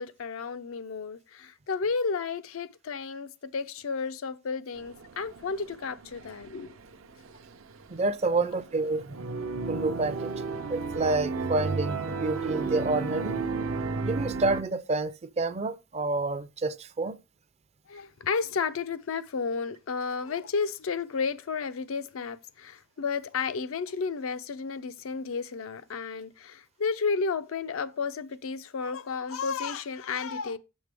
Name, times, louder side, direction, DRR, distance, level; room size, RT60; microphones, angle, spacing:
voice 1, 0.0-6.8 17.9-30.6, left 5 dB, 85° left, 0.5 m, -32 dB
sound 1, 4.8-14.6, right 4 dB, 75° right, 0.6 m, -34 dB
voice 2, 7.9-9.0 9.7-10.3 10.7-13.3 14.0-17.2, right 3 dB, 30° right, 0.4 m, -28 dB
6.6 x 6.3 x 3.4 m
head